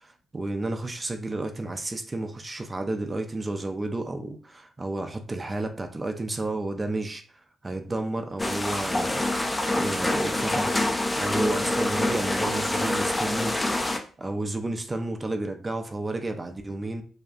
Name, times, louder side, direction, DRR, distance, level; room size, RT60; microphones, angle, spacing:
voice 1, 0.0-7.2 7.6-9.2 9.7-13.6 14.2-17.0, right 2 dB, 30° right, 5 dB, 0.4 m, -31 dB
sound 1, 8.4-14.0, left 1 dB, 20° left, 0.5 m, -26 dB
2.7 x 2.2 x 2.5 m, 0.41 s
hypercardioid pair, 40°, 0 cm